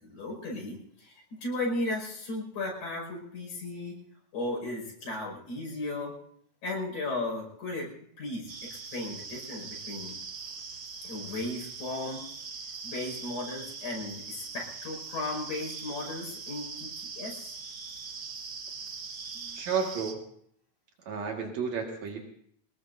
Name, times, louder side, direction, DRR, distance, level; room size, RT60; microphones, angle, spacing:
voice 1, 0.0-4.0 4.3-6.1 6.6-7.9 8.2-10.1 11.0-12.2 12.8-17.6 19.3-19.6, left 2 dB, 90° left, -1 dB, 7.2 m, -36 dB
sound 1, 8.5-20.1, right 5 dB, 50° right, 1.5 m, -41 dB
voice 2, 19.5-20.2 21.0-22.2, right 6 dB, 65° right, 1 dB, 3.1 m, -32 dB
24.0 x 19.0 x 2.7 m, 0.66 s
omnidirectional pair, 3.4 m